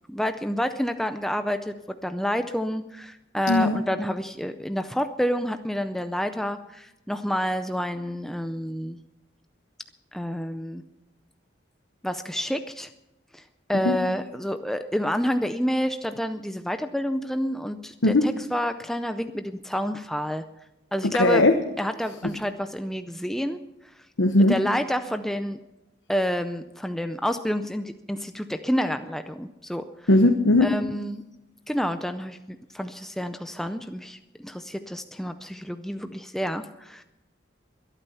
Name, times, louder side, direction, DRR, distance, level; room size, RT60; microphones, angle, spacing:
voice 1, 0.1-9.0 10.1-10.8 12.0-12.9 13.3-13.4 13.7-20.4 20.9-21.4 21.8-23.6 24.5-25.6 26.1-29.8 30.6-31.2 31.7-37.0, equal, ahead, 8 dB, 0.4 m, -29 dB
voice 2, 3.5-3.8 13.8-13.9 18.0-18.2 21.2-21.5 24.2-24.6 30.1-30.7, left 2 dB, 85° left, 4 dB, 1.1 m, -18 dB
22.5 x 9.0 x 5.6 m, 0.94 s
head